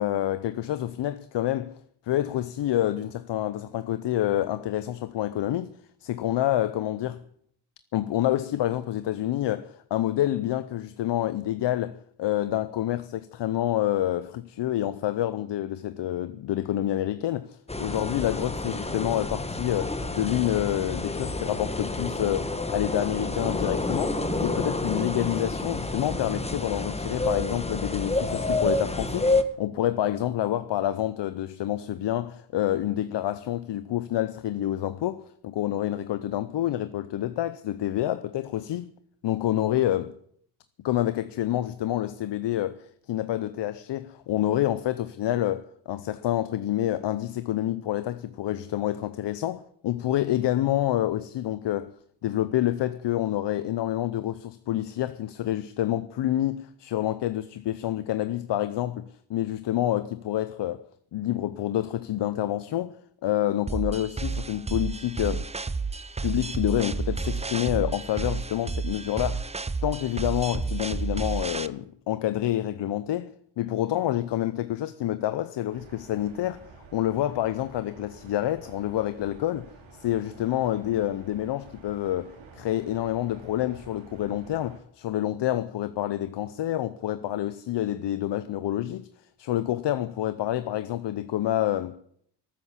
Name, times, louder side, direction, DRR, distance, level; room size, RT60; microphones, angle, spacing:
voice 1, 0.0-1.7 2.1-5.7 6.0-7.2 7.9-29.3 29.6-38.9 39.2-40.1 40.8-51.9 52.2-60.8 61.1-63.0 63.2-65.5 66.2-69.5 69.8-73.3 73.6-76.6 76.9-89.1 89.4-92.0, left 13 dB, 60° left, 0.7 m, -28 dB
sound 1, 17.7-29.4, left 2 dB, 15° left, 1.2 m, -29 dB
sound 2, 63.7-71.7, right 4 dB, 15° right, 0.6 m, -31 dB
sound 3, 75.7-84.8, right 4 dB, 75° right, 3.1 m, -50 dB
13.0 x 9.0 x 8.4 m
cardioid pair, 85°, 47 cm